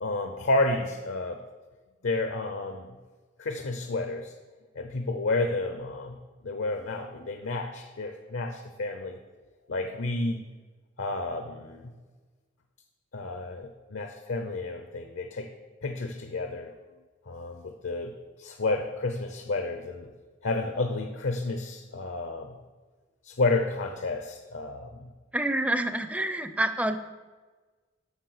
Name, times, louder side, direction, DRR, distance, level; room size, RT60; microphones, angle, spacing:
voice 1, 0.0-1.4 2.0-2.9 3.4-4.3 4.8-6.2 6.4-9.2 9.7-10.4 11.0-11.9 13.1-15.5 15.8-16.7 17.3-20.1 20.4-22.6 23.2-25.1, left 2 dB, 75° left, 6 dB, 0.7 m, -31 dB
voice 2, 25.3-27.0, right 1 dB, 5° right, 9 dB, 0.5 m, -27 dB
8.1 x 6.2 x 6.5 m, 1.3 s
head